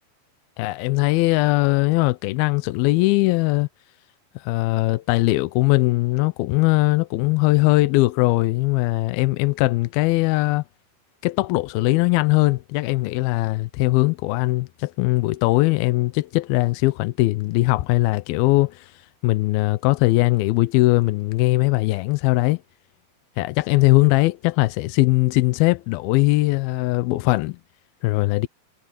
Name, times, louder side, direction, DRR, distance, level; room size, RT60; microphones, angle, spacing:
voice 1, 0.6-3.7 4.4-10.6 11.2-18.9 19.2-22.6 23.4-27.6 28.0-28.5, left 21 dB, 85° left, 2.5 m, -20 dB
omnidirectional pair, 4.4 m